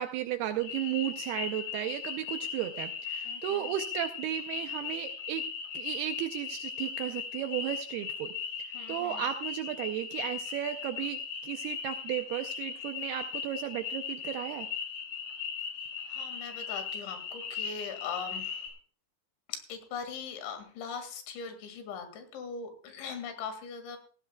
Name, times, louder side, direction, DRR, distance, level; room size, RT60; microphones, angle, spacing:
voice 1, 0.0-5.4 5.7-8.3 8.9-14.7, right 12 dB, 80° right, 7 dB, 2.3 m, -34 dB
sound 1, 0.6-18.7, left 6 dB, 50° left, 5.4 m, -38 dB
voice 2, 3.2-3.7 8.7-9.2 16.1-18.7 19.5-24.0, left 6 dB, 85° left, 7 dB, 4.4 m, -40 dB
18.0 x 16.0 x 2.3 m, 0.41 s
omnidirectional pair, 5.2 m